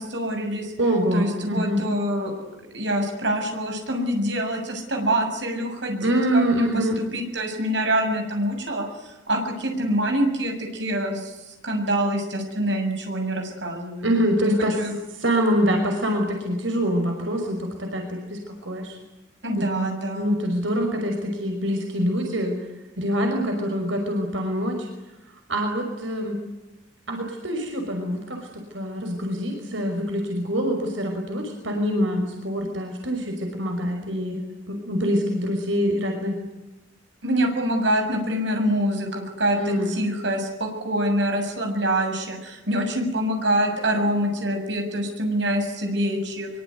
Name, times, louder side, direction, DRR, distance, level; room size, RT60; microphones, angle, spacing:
voice 1, 0.0-0.7 1.1-2.3 2.7-14.2 14.4-14.5 14.8-14.9 19.4-20.4 37.2-46.5, right 1 dB, 70° right, 3 dB, 7.1 m, -25 dB
voice 2, 0.8-1.8 6.0-7.0 14.0-14.8 15.1-19.0 19.6-19.7 20.1-22.6 23.0-24.9 25.5-26.4 27.1-34.4 34.7-36.4 39.5-39.9, equal, 85° right, 3 dB, 5.8 m, -25 dB
24.0 x 24.0 x 9.6 m, 1.0 s
head